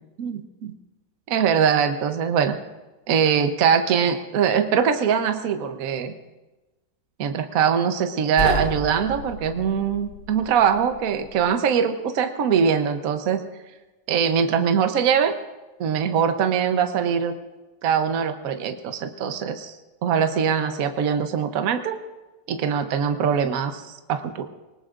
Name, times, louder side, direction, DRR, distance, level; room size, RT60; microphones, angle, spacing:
voice 1, 0.2-0.7 1.3-2.6 3.1-6.1 7.2-13.4 14.1-15.3 15.8-17.3 17.8-19.8 20.0-22.0 22.5-24.5, right 7 dB, 55° right, 7 dB, 1.2 m, -22 dB
sound 1, 8.4-11.4, left 1 dB, 50° left, 3.6 m, -32 dB
26.5 x 19.5 x 2.5 m, 1.1 s
omnidirectional pair, 2.0 m